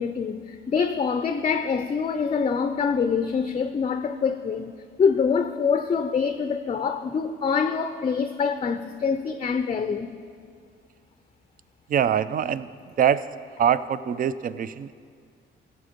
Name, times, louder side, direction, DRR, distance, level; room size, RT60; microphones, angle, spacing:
voice 1, 0.0-10.1, left 6 dB, 30° left, 0.5 m, -25 dB
voice 2, 11.9-12.7 13.0-13.2 13.6-14.9, right 9 dB, 45° right, 0.4 m, -23 dB
15.0 x 6.9 x 5.1 m
cardioid pair, 90°, 20 cm